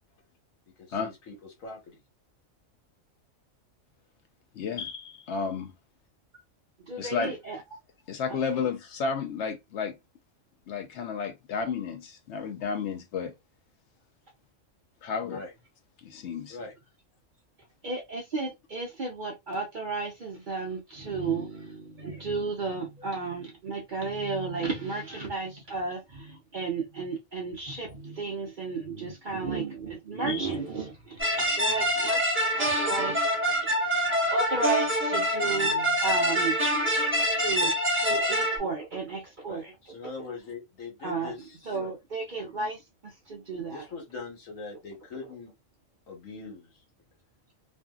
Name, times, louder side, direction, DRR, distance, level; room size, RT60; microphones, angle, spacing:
voice 1, 0.8-2.0 15.2-15.5 16.5-16.7 39.5-39.6 39.9-41.9 43.6-45.5 46.1-46.7, left 4 dB, 80° left, 1.4 m, -42 dB
voice 2, 4.5-5.6 7.0-7.3 8.1-9.9 10.7-13.3 15.0-15.4 16.0-16.6 30.3-30.5, left 5 dB, 65° left, 0.8 m, -32 dB
voice 3, 6.9-7.6 8.3-8.4 17.8-31.2 31.6-33.2 34.3-39.6 41.0-41.3 41.7-43.8, right 4 dB, 50° right, 0.6 m, -33 dB
sound 1, 31.2-38.6, equal, 10° right, 0.7 m, -26 dB
2.6 x 2.5 x 2.2 m
omnidirectional pair, 1.4 m